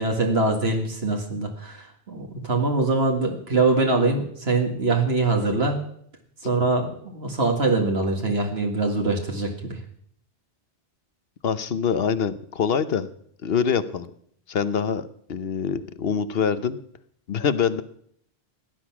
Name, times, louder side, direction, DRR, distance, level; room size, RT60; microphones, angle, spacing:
voice 1, 0.0-5.8 6.4-9.8, right 3 dB, 75° right, 1 dB, 2.2 m, -23 dB
voice 2, 11.4-13.1 13.4-14.1 14.5-16.8 17.3-17.8, left 7 dB, 70° left, 13 dB, 1.0 m, -25 dB
17.0 x 10.5 x 6.0 m, 0.66 s
omnidirectional pair, 1.1 m